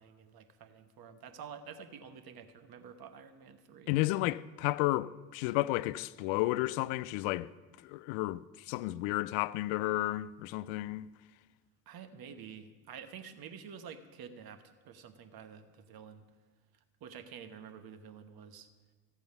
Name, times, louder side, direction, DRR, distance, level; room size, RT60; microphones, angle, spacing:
voice 1, 0.0-3.9 11.9-16.3 17.0-18.7, right 7 dB, 45° right, 1.2 m, -49 dB
voice 2, 3.9-7.5 7.8-11.1, left 17 dB, 65° left, 0.5 m, -32 dB
14.0 x 8.1 x 5.4 m
hypercardioid pair, 70°, 48 cm